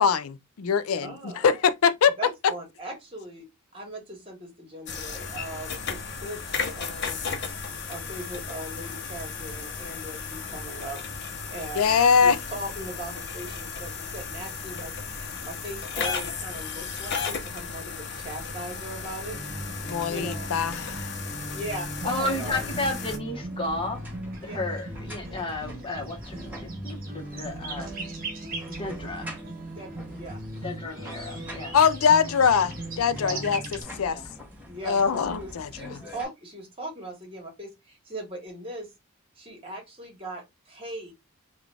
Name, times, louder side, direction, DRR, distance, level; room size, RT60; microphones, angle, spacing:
voice 1, 0.0-2.2 11.8-12.4 19.9-21.2 31.7-34.2 34.8-36.0, left 6 dB, 85° left, 0.4 m, -23 dB
voice 2, 1.0-1.6 2.2-3.4 3.7-7.3 7.9-11.0 11.5-14.9 15.4-19.4 20.1-20.5 21.5-22.6 24.4-24.6 29.7-30.4 34.7-38.9 39.4-41.1, right 1 dB, 25° right, 1.5 m, -39 dB
sound 1, 4.9-23.2, left 5 dB, 55° left, 0.8 m, -35 dB
sound 2, 19.3-33.8, right 1 dB, 45° right, 1.0 m, -38 dB
voice 3, 22.0-24.0 24.4-28.0 28.8-29.3 30.6-31.7 33.2-33.4 34.0-34.3, left 2 dB, 25° left, 1.1 m, -33 dB
sound 3, 22.2-36.2, equal, 10° right, 1.2 m, -44 dB
3.8 x 2.3 x 3.3 m
head